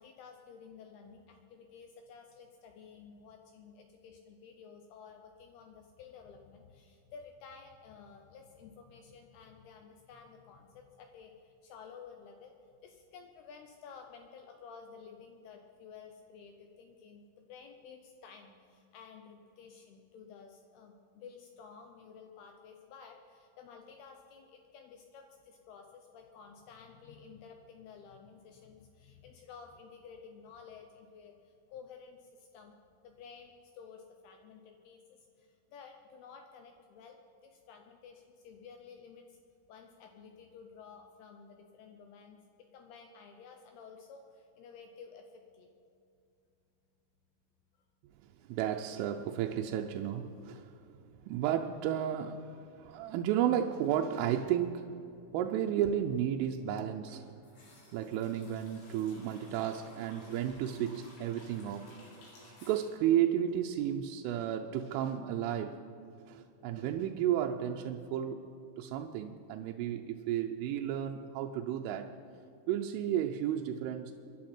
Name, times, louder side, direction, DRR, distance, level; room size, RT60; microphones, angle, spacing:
voice 1, 0.0-12.5 12.8-32.8 33.0-37.2 37.4-39.4 39.7-42.4 42.7-45.7, left 6 dB, 85° left, 4 dB, 2.3 m, -53 dB
voice 2, 48.5-50.8 51.3-55.0 55.3-57.3 57.9-62.0 62.6-65.8 66.3-68.4 68.8-72.1 72.7-74.1, right 10 dB, 85° right, 3 dB, 3.2 m, -33 dB
sound 1, 57.1-64.1 64.3-64.4, left 1 dB, 65° left, 5.4 m, -57 dB
23.5 x 11.5 x 4.4 m, 2.6 s
omnidirectional pair, 5.6 m